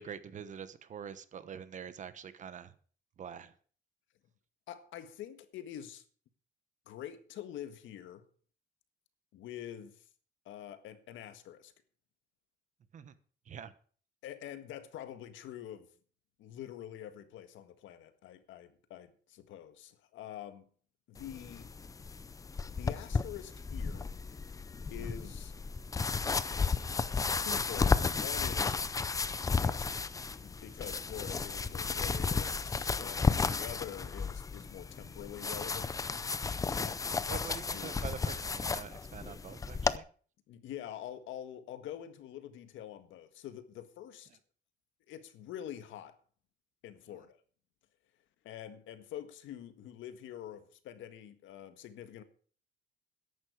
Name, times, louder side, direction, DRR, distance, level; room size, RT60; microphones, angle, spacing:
voice 1, 0.0-2.7 3.2-3.5 12.9-13.1 13.4-13.7 36.8-40.1 47.1-47.2, right 7 dB, 40° right, 1.1 m, -45 dB
voice 2, 4.7-6.0 6.8-8.2 9.3-10.1 10.4-11.7 14.2-15.9 16.4-20.7 21.1-21.7 22.7-24.1 24.9-25.5 27.4-28.9 29.2-29.9 30.4-36.0 36.8-38.0 40.5-44.3 45.1-46.2 46.8-47.4 48.4-52.2, left 11 dB, 80° left, 1.7 m, -46 dB
sound 1, 21.2-40.0, left 4 dB, 15° left, 0.6 m, -33 dB
14.0 x 11.0 x 4.9 m
cardioid pair, 160°, 20 cm